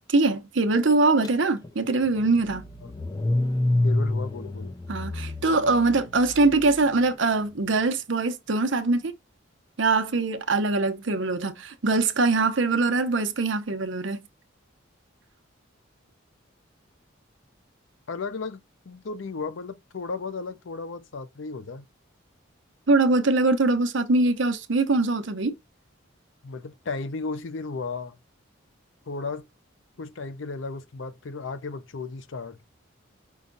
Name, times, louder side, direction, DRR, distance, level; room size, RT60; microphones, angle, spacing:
voice 1, 0.1-2.6 4.9-9.1 9.8-14.2 22.9-25.5, right 3 dB, 65° right, 0.8 m, -23 dB
Car / Engine starting, 1.2-1.3 1.6-6.9, left 1 dB, 20° left, 0.5 m, -28 dB
voice 2, 3.8-4.7 18.1-21.9 26.4-28.2 29.1-29.5 30.0-32.6, left 4 dB, 65° left, 0.6 m, -34 dB
5.6 x 2.3 x 3.8 m
head